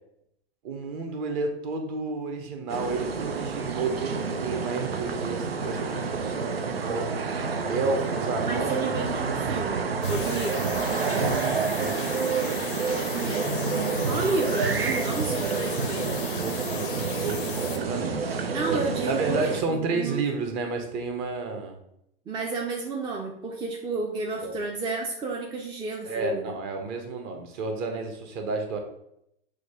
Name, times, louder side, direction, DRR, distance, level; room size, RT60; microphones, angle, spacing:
voice 1, 0.6-7.2 7.7-9.0 10.9-12.5 16.4-18.4 18.7-18.8 19.1-21.8 24.4-24.5 26.0-28.8, right 3 dB, 40° right, 4 dB, 0.9 m, -31 dB
sound 1, 2.7-19.6, right 5 dB, 85° right, 0.5 m, -29 dB
voice 2, 8.4-10.7 13.2-13.6 14.0-16.1 18.5-20.2 22.3-26.5, right 3 dB, 15° right, 1 dB, 0.4 m, -31 dB
sound 2, 10.0-17.8, left 9 dB, 60° left, 0.6 m, -38 dB
6.2 x 2.3 x 3.4 m, 0.76 s
figure-of-eight pair, 90°, 29 cm